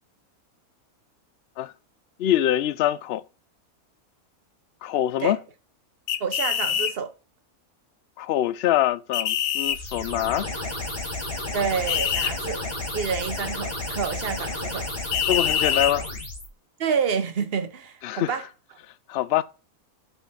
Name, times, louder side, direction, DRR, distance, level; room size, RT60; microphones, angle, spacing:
voice 1, 2.2-3.2 4.8-5.4 8.2-10.5 15.3-16.1 18.0-18.4 19.1-19.4, left 12 dB, 70° left, 0.6 m, -24 dB
sound 1, 6.1-6.9 9.1-9.8 11.9-12.3 15.1-15.9, left 9 dB, 90° left, 1.2 m, -24 dB
voice 2, 6.2-7.1 11.5-12.6 12.9-14.9 16.8-18.4, right 6 dB, 45° right, 1.1 m, -28 dB
sound 2, 9.7-16.5, left 2 dB, 40° left, 3.1 m, -32 dB
8.1 x 4.4 x 5.7 m
omnidirectional pair, 1.6 m